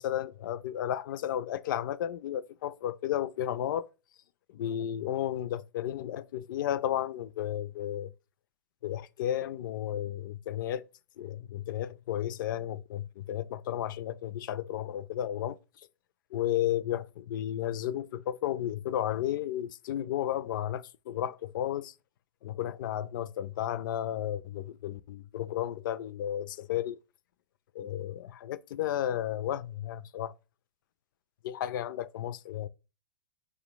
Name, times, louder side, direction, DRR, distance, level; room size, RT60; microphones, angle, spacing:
voice 1, 0.0-3.9 4.5-8.1 8.8-10.9 11.2-15.6 16.3-21.9 22.4-27.0 27.7-30.3 31.4-32.7, left 11 dB, 60° left, 0.4 m, -33 dB
4.8 x 2.1 x 4.6 m
hypercardioid pair, 105°, 12 cm